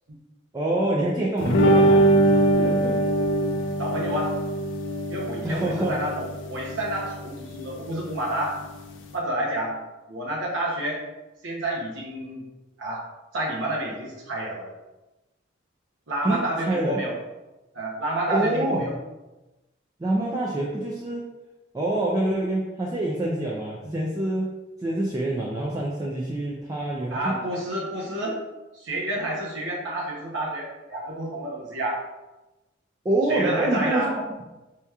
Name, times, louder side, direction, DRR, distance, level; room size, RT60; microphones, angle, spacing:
voice 1, 0.5-3.0 5.4-6.0 16.2-17.0 18.3-19.0 20.0-21.3 21.7-24.5 24.8-27.4 33.0-34.3, right 1 dB, 15° right, -4 dB, 0.3 m, -26 dB
sound 1, 1.4-9.1, right 1 dB, 65° left, 0.4 m, -23 dB
voice 2, 3.8-4.3 5.1-8.6 9.1-9.8 10.1-11.0 11.4-12.4 12.8-13.1 13.3-14.7 16.1-17.1 17.7-18.9 27.1-28.4 28.7-32.0 33.3-34.1, right 1 dB, 70° right, -3 dB, 0.7 m, -29 dB
4.7 x 2.8 x 2.3 m, 1.1 s
head